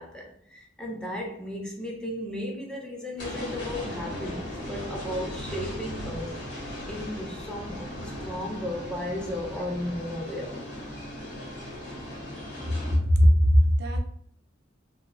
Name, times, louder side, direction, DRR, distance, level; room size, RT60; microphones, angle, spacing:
voice 1, 0.0-10.7, left 1 dB, 5° left, 0.3 m, -35 dB
sound 1, 3.2-13.0, left 1 dB, 65° left, 0.8 m, -37 dB
voice 2, 12.9-14.0, equal, 60° right, 0.4 m, -19 dB
2.9 x 2.1 x 2.4 m
head